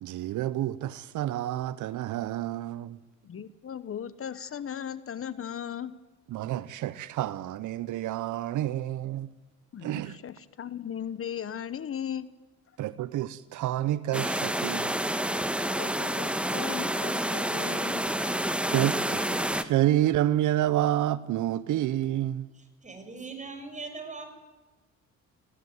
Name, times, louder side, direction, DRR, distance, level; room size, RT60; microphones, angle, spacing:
voice 1, 0.0-3.0 6.3-9.3 9.8-10.2 12.8-14.9 18.7-22.5, right 13 dB, 80° right, 0.8 m, -29 dB
voice 2, 3.2-6.0 9.7-12.3 15.7-18.5, left 8 dB, 45° left, 1.1 m, -37 dB
sound 1, 14.1-19.6, right 1 dB, 5° right, 1.4 m, -29 dB
voice 3, 22.6-24.2, right 4 dB, 25° right, 6.1 m, -40 dB
21.5 x 17.0 x 9.4 m
cardioid pair, 90°, 30 cm